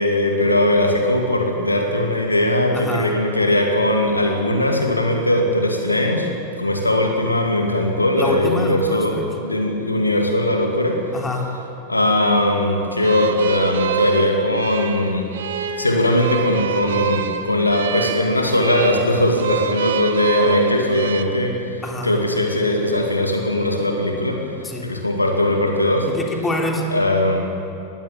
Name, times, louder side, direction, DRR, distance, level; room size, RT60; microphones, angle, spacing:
voice 1, 0.0-6.3 6.6-11.1 11.9-15.3 15.7-26.1 26.9-27.5, left 1 dB, 85° left, 3 dB, 2.2 m, -19 dB
voice 2, 2.7-3.1 8.2-9.3 11.1-11.6 21.8-22.2 24.6-24.9 26.1-26.9, left 2 dB, 15° left, 1 dB, 3.2 m, -26 dB
sound 1, 13.0-21.2, right 8 dB, 60° right, 1.4 m, -26 dB
20.5 x 16.0 x 8.9 m, 3.0 s
figure-of-eight pair, 90°, 0 cm